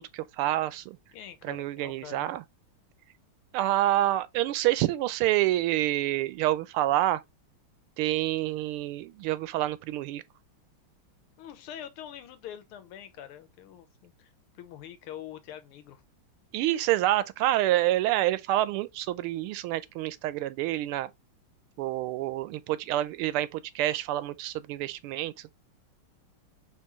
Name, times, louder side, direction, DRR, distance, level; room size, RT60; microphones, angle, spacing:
voice 1, 0.0-1.0 1.4-2.4 3.5-7.2 8.0-10.2 16.5-21.1 21.8-25.5, right 14 dB, 85° right, 1.5 m, -27 dB
voice 2, 1.1-2.3 11.4-16.0, left 10 dB, 90° left, 1.7 m, -45 dB
4.4 x 3.7 x 2.9 m
omnidirectional pair, 2.3 m